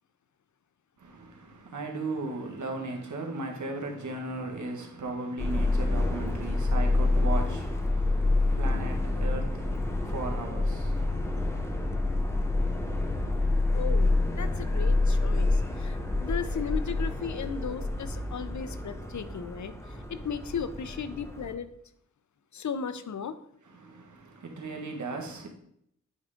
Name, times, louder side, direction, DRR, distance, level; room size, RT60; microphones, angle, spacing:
voice 1, 1.0-11.4 23.7-25.5, right 3 dB, 75° right, 1.6 m, -37 dB
Subway metro underground, 5.4-21.5, left 2 dB, 10° left, 1.2 m, -28 dB
voice 2, 13.7-19.7 20.1-21.7 22.5-23.4, left 6 dB, 70° left, 0.6 m, -36 dB
9.1 x 3.7 x 5.1 m
wide cardioid pair, 90°, 30 cm